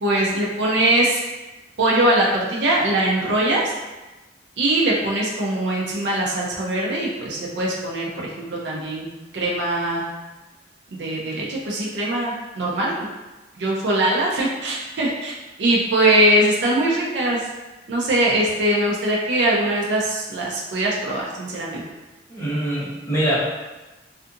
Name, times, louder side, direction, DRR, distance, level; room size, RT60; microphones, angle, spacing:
voice 1, 0.0-1.2 1.8-3.6 4.6-10.0 11.0-13.1 13.6-17.5 17.9-21.8, right 1 dB, 65° right, -4 dB, 0.5 m, -21 dB
voice 2, 22.3-23.4, right 1 dB, 15° left, -9 dB, 0.8 m, -23 dB
2.6 x 2.4 x 2.4 m, 1.1 s
head